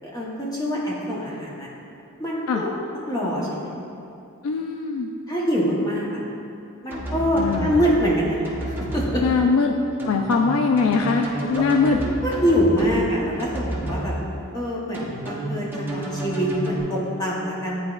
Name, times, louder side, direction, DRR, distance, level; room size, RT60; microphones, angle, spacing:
voice 1, 0.0-1.7 2.2-2.7 3.1-3.7 5.3-6.2 6.8-8.4 8.7-9.2 11.5-11.6 12.2-14.1 14.5-17.8, equal, 20° left, -5 dB, 0.8 m, -24 dB
voice 2, 4.4-5.1 7.4-7.7 9.2-9.7 10.1-12.0, left 4 dB, 85° left, 4 dB, 0.3 m, -21 dB
sound 1, 6.9-8.0 8.4-9.1 10.0-13.0 13.4-14.1 14.9-16.8, right 1 dB, 10° right, 0.9 m, -30 dB
9.7 x 4.3 x 2.4 m, 2.6 s
head